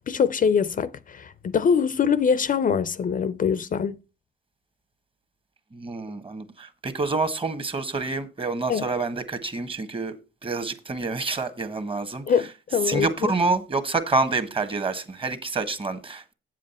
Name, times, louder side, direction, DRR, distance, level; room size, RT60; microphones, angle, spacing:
voice 1, 0.0-3.9 8.7-8.8 12.3-13.3, left 6 dB, 45° left, 0.6 m, -23 dB
voice 2, 5.7-10.1 10.4-12.2 12.9-16.3, right 3 dB, 25° right, 1.3 m, -27 dB
8.4 x 7.5 x 4.2 m
cardioid pair, 90°, 20 cm